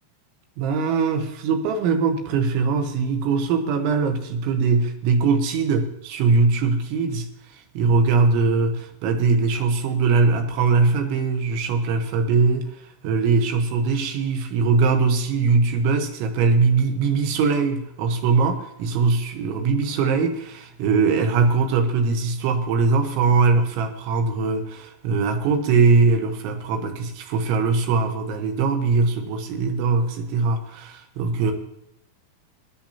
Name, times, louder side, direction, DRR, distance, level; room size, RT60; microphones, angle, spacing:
voice 1, 0.6-7.3 7.8-12.7 13.0-31.5, right 4 dB, 85° right, 5 dB, 3.6 m, -21 dB
23.5 x 10.5 x 2.9 m, 0.81 s
omnidirectional pair, 5.2 m